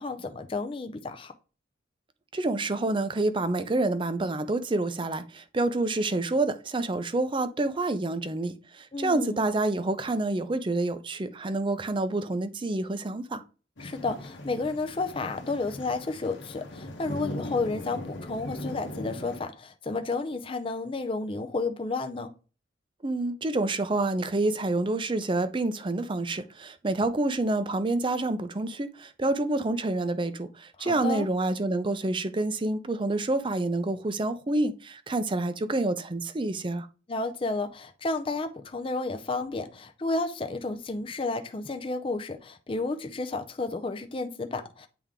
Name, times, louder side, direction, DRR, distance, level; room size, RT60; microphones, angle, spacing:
voice 1, 0.0-1.3 8.9-9.4 13.8-22.3 30.8-31.3 37.1-44.9, left 3 dB, 30° left, 0.5 m, -32 dB
voice 2, 2.3-13.4 23.0-36.9, right 2 dB, 25° right, 0.5 m, -28 dB
sound 1, 13.8-19.4, left 1 dB, 85° left, 1.1 m, -39 dB
8.8 x 3.4 x 3.7 m
head